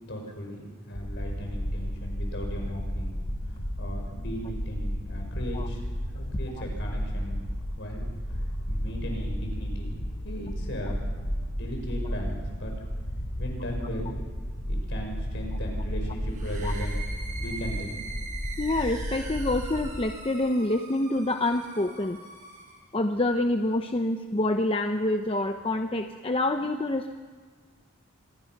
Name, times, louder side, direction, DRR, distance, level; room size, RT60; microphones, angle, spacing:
voice 1, 0.1-3.2 3.8-5.9 6.1-7.4 7.8-8.0 8.7-9.9 10.2-11.0 11.5-12.7 13.4-14.1 14.7-17.0 17.4-18.0, equal, 60° left, 1 dB, 6.0 m, -37 dB
sound 1, 0.9-19.9, equal, 90° left, 3.8 m, -33 dB
sound 2, 16.3-22.9, right 3 dB, 40° right, 5.6 m, -42 dB
voice 2, 18.6-22.2 22.9-27.1, left 1 dB, 25° left, 6 dB, 0.8 m, -27 dB
25.5 x 21.5 x 6.0 m, 1.5 s
head